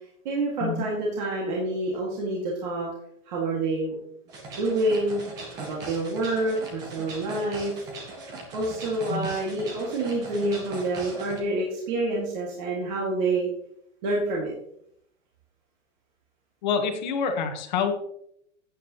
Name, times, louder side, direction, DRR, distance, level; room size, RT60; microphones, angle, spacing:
voice 1, 0.3-2.9 3.3-3.9 4.5-5.2 5.6-7.7 8.5-13.5 14.0-14.5, right 2 dB, 35° right, -3 dB, 1.9 m, -27 dB
sound 1, 4.3-11.4, right 2 dB, 10° right, 0.6 m, -40 dB
voice 2, 16.6-17.9, left 6 dB, 35° left, 6 dB, 1.2 m, -27 dB
12.0 x 8.4 x 2.9 m, 0.73 s
supercardioid pair, 175°, 39 cm